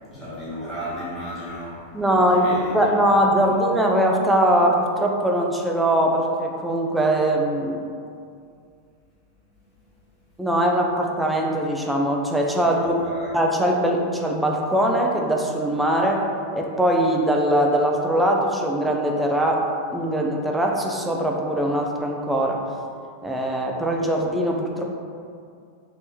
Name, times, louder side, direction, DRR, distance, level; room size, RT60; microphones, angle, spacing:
voice 1, 0.0-3.6 9.7-9.8 12.7-13.3, equal, 15° left, -11 dB, 1.0 m, -35 dB
voice 2, 1.9-7.9 10.4-13.0 13.3-16.2 16.5-19.6 19.9-22.6 23.2-24.9, right 1 dB, 5° right, 0 dB, 0.3 m, -21 dB
3.3 x 2.9 x 2.3 m, 2.3 s
figure-of-eight pair, 90°, 0 cm